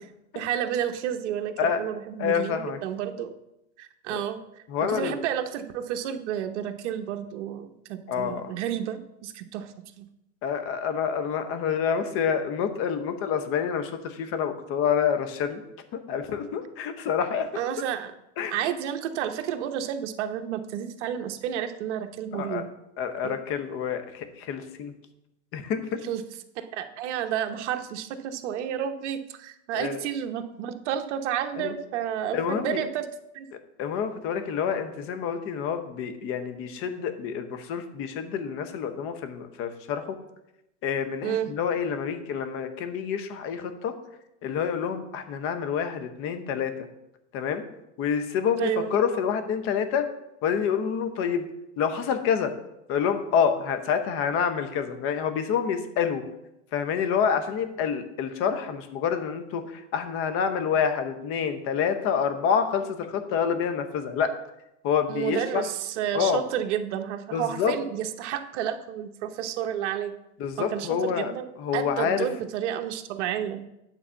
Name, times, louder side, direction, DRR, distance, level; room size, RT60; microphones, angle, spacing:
voice 1, 0.3-3.3 3.8-4.4 4.8-10.1 17.5-18.1 18.5-22.7 23.2-23.3 26.0-26.2 26.6-33.0 33.3-33.5 41.2-41.5 48.6-48.9 65.1-70.1 70.6-71.5 71.7-73.7, right 10 dB, 60° right, 7 dB, 1.0 m, -31 dB
voice 2, 2.2-2.8 4.1-4.2 4.7-5.2 8.1-8.5 10.4-15.6 15.9-17.5 18.4-18.5 22.3-22.6 23.0-24.9 25.5-26.0 29.7-30.0 31.6-31.7 32.3-32.8 33.8-40.2 40.8-43.9 44.4-46.7 47.3-47.6 48.0-50.0 50.4-51.5 51.8-52.5 52.9-56.2 56.7-64.3 64.8-65.6 66.1-66.4 67.3-67.7 70.4-71.3 71.6-72.3, left 7 dB, 35° left, 9 dB, 0.9 m, -27 dB
8.8 x 4.1 x 7.0 m, 0.88 s
supercardioid pair, 140°, 39 cm